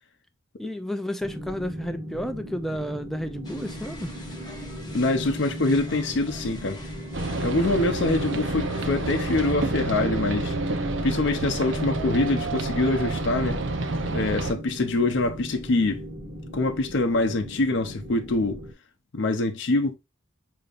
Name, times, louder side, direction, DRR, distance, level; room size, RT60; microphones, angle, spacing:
voice 1, 0.6-4.1, equal, ahead, 0.3 m, -32 dB
sound 1, 1.2-18.7, equal, 35° right, 1.5 m, -38 dB
sound 2, 3.4-9.5, left 1 dB, 20° left, 1.0 m, -44 dB
voice 2, 4.9-6.8 7.4-10.6 11.0-13.6 14.1-16.0 16.5-18.6 19.1-20.0, left 2 dB, 60° left, 0.6 m, -25 dB
sound 3, 7.1-14.5, right 2 dB, 65° right, 0.7 m, -29 dB
6.6 x 2.8 x 2.4 m
head